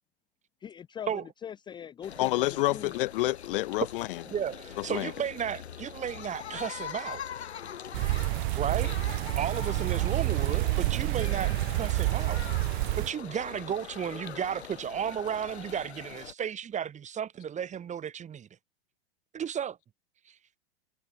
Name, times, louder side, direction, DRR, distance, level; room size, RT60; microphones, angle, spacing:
voice 1, 0.6-3.0 5.1-5.2, left 9 dB, 15° left, 0.5 m, -42 dB
sound 1, 2.0-16.3, left 8 dB, 85° left, 1.3 m, -43 dB
voice 2, 2.2-4.2 4.8-5.1, left 18 dB, 55° left, 0.7 m, -28 dB
voice 3, 4.3-7.2 8.6-8.9 9.4-12.4 13.0-18.5 19.3-19.8 20.3-20.4, right 8 dB, 20° right, 2.7 m, -34 dB
sound 2, 7.9-13.1, right 24 dB, 50° right, 1.5 m, -28 dB
hypercardioid pair, 110°, 32 cm